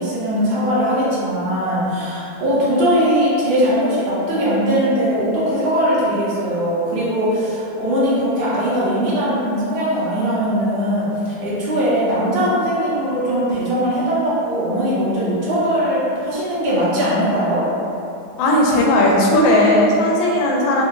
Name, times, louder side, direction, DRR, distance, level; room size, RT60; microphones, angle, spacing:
voice 1, 0.0-17.7, equal, 90° right, -9 dB, 0.5 m, -20 dB
voice 2, 18.4-20.8, left 1 dB, 80° left, -2 dB, 1.3 m, -16 dB
3.7 x 2.8 x 2.4 m, 2.7 s
omnidirectional pair, 2.2 m